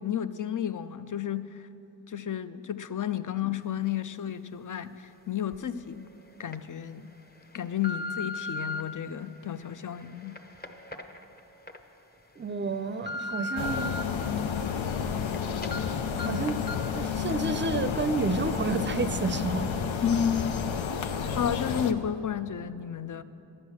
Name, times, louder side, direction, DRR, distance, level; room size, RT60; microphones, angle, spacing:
voice 1, 0.0-1.6 2.1-6.1 6.4-7.1 7.5-10.3 20.0-20.5 21.4-23.2, left 9 dB, 45° left, 12 dB, 0.5 m, -32 dB
sound 1, 5.5-5.6 6.2-6.6 7.2-8.8 9.5-11.8 12.2-12.3 12.7-14.0 14.5-15.4 15.6-15.8 16.2-16.3 16.7-16.9 17.3-17.4, left 2 dB, 20° left, 0.8 m, -37 dB
voice 2, 12.4-14.0 16.2-19.7 21.3-21.4, right 3 dB, 25° right, 12 dB, 0.5 m, -30 dB
sound 2, 13.6-21.9, left 7 dB, 90° left, 0.6 m, -31 dB
11.5 x 8.0 x 7.2 m, 2.9 s
cardioid pair, 45°, 45 cm